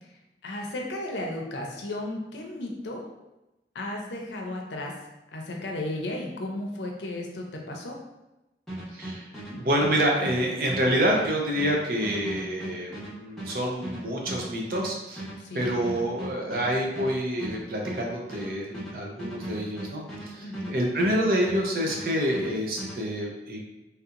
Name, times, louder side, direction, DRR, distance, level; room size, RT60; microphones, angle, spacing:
voice 1, 0.4-3.0 3.7-4.9 5.3-8.0 15.4-15.7 20.4-20.7, left 1 dB, 85° left, 1 dB, 0.6 m, -34 dB
sound 1, 8.7-21.6 21.9-23.0, right 1 dB, ahead, 0.9 m, -38 dB
voice 2, 8.9-15.3 15.5-23.7, equal, 55° right, -1 dB, 0.6 m, -27 dB
3.2 x 2.8 x 2.5 m, 0.99 s
head